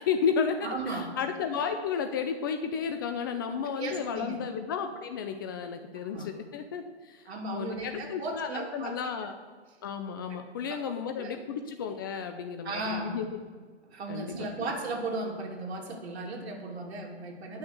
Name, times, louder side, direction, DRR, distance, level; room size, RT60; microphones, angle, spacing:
voice 1, 0.0-9.4 9.8-13.4 14.1-14.5, left 6 dB, 20° left, 6 dB, 0.4 m, -33 dB
voice 2, 0.6-1.1 3.8-4.4 6.1-6.3 7.3-9.0 10.7-11.3 12.6-13.2 13.9-17.6, right 2 dB, 70° right, 1 dB, 2.8 m, -36 dB
10.5 x 6.2 x 7.8 m, 1.5 s
hypercardioid pair, 135°, 34 cm